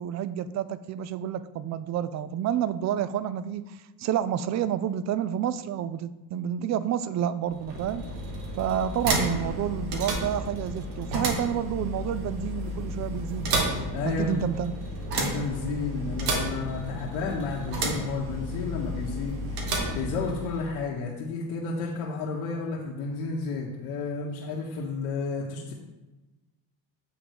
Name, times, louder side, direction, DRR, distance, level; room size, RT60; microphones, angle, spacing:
voice 1, 0.0-8.0 8.5-13.7 14.0-14.7, right 9 dB, 40° right, 15 dB, 0.4 m, -29 dB
sound 1, 7.4-20.7, right 1 dB, 90° right, 1.4 m, -32 dB
voice 2, 13.9-14.5 15.2-25.7, left 4 dB, 80° left, -2 dB, 1.2 m, -32 dB
7.9 x 3.8 x 4.7 m, 1.1 s
supercardioid pair, 90°, 48 cm